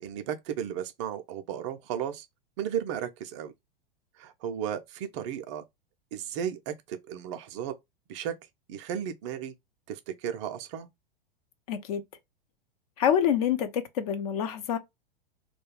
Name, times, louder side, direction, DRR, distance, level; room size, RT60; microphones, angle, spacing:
voice 1, 0.0-2.3 2.6-3.5 4.2-5.6 6.1-7.7 8.1-8.3 8.7-9.5 9.9-10.9, right 9 dB, 35° right, 0.4 m, -34 dB
voice 2, 11.7-12.0 13.0-14.8, left 9 dB, 40° left, 0.5 m, -26 dB
2.3 x 2.1 x 3.1 m
figure-of-eight pair, 95°, 29 cm